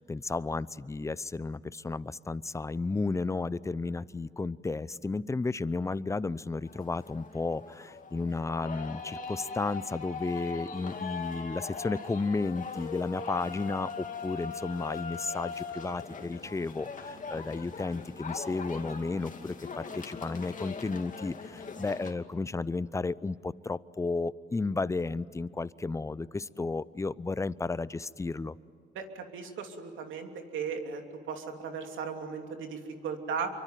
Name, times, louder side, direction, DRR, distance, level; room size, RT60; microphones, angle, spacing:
voice 1, 0.0-28.6, left 3 dB, 15° left, 18 dB, 0.6 m, -33 dB
sound 1, 6.7-22.1, left 5 dB, 40° left, 2.6 m, -40 dB
voice 2, 28.9-31.0 31.3-33.5, right 6 dB, 80° right, 4 dB, 3.0 m, -36 dB
26.5 x 24.0 x 9.3 m, 2.3 s
cardioid pair, 90°, 20 cm